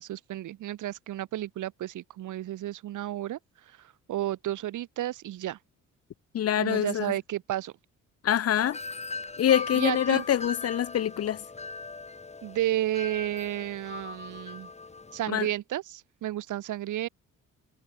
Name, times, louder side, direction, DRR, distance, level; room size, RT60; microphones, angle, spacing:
voice 1, 0.0-5.6 6.6-7.7 9.7-10.2 12.4-14.7 15.1-17.1, right 13 dB, 80° right, 6.9 m, -32 dB
voice 2, 6.3-7.1 8.2-8.8 9.4-11.4 15.3-15.5, left 10 dB, 55° left, 0.9 m, -25 dB
Wind chime, 8.6-15.3, left 4 dB, 20° left, 1.9 m, -39 dB
cardioid pair, 90°, 30 cm